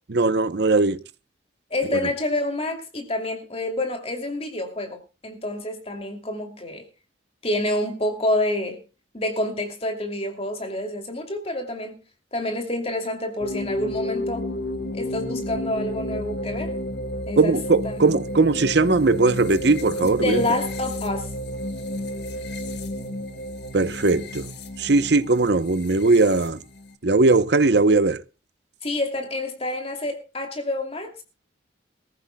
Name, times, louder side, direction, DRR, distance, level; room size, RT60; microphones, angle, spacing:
voice 1, 0.1-1.0 17.4-20.4 23.7-24.5 24.8-26.6 27.0-28.2, right 3 dB, 55° right, 0.8 m, -19 dB
voice 2, 1.7-6.8 7.4-8.8 9.1-12.0 12.3-14.5 14.9-16.7 17.3-17.6 17.8-18.0 20.0-21.3 28.8-31.2, left 1 dB, 30° left, 2.7 m, -28 dB
sound 1, 13.4-26.9, left 1 dB, 60° left, 1.8 m, -32 dB
23.0 x 14.5 x 2.2 m
head